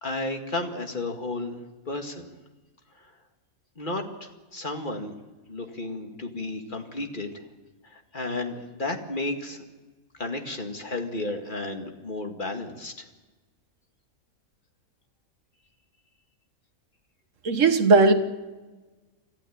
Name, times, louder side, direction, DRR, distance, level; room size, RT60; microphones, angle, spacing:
voice 1, 0.0-1.6 1.9-2.3 3.0-3.1 3.8-5.2 5.5-7.4 7.8-9.6 10.2-13.0, left 2 dB, 35° left, 2.2 m, -33 dB
voice 2, 17.4-18.1, right 3 dB, 60° right, 1.7 m, -17 dB
26.0 x 14.5 x 8.7 m
omnidirectional pair, 1.5 m